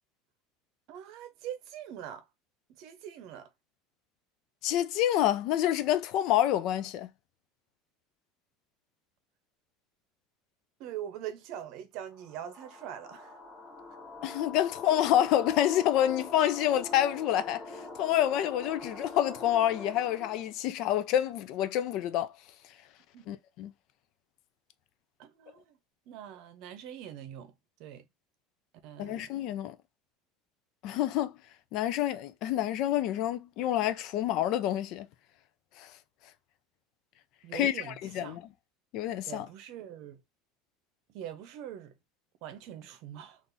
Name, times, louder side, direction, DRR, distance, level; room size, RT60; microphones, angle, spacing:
voice 1, 0.9-2.3 2.8-3.5 10.8-13.4 23.1-23.3 25.2-25.8 26.1-27.5 27.8-28.0 28.8-29.3 37.4-38.4 39.3-40.2 41.1-41.9 42.4-43.4, right 10 dB, 55° right, 0.7 m, -43 dB
voice 2, 4.6-7.1 14.2-22.3 23.3-23.7 29.0-29.7 30.8-31.3 31.7-35.1 35.8-35.9 37.5-37.7 38.1-38.4 38.9-39.5, left 12 dB, 50° left, 0.4 m, -28 dB
sound 1, 12.1-20.5, left 3 dB, 35° left, 1.3 m, -44 dB
3.9 x 2.5 x 2.6 m
cardioid pair, 160°, 0 cm